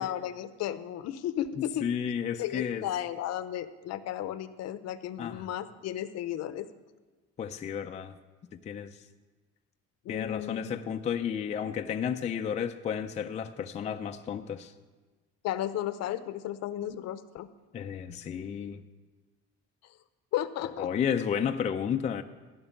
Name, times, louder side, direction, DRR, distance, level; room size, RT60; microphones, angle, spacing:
voice 1, 0.0-1.9 2.4-6.7 10.0-10.7 15.4-17.5 20.3-20.9, left 11 dB, 60° left, 13 dB, 0.7 m, -34 dB
voice 2, 1.6-2.8 5.2-5.5 7.4-8.2 8.6-8.9 10.1-14.7 17.7-18.8 20.8-22.2, left 8 dB, 25° left, 6 dB, 0.4 m, -32 dB
15.0 x 6.0 x 8.9 m, 1.3 s
cardioid pair, 165°, 30 cm